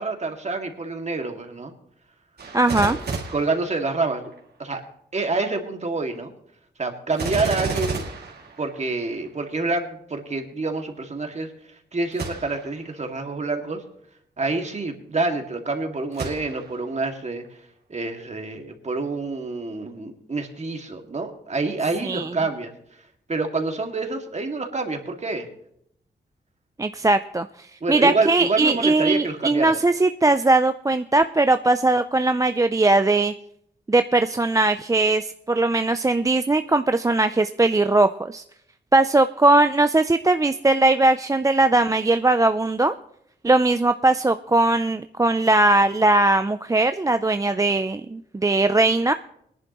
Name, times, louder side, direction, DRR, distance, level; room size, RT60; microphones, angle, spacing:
voice 1, 0.0-1.7 2.7-3.0 3.3-4.3 4.6-4.8 5.1-6.3 6.8-8.1 8.6-13.8 14.4-17.4 17.9-22.7 23.3-25.5 27.8-29.8, right 3 dB, 40° right, 4 dB, 2.2 m, -27 dB
Gunshot gunfire, 2.4-4.4 7.1-9.2 12.1-12.8 13.4-13.5 16.1-16.9 17.4-17.5, right 4 dB, 65° right, 2.4 m, -32 dB
voice 2, 2.5-3.0 22.0-22.3 26.8-33.3 33.9-38.4 38.9-42.9 43.4-49.1, right 2 dB, 20° right, 10 dB, 0.5 m, -20 dB
19.5 x 11.0 x 3.1 m, 0.72 s
cardioid pair, 60°, 18 cm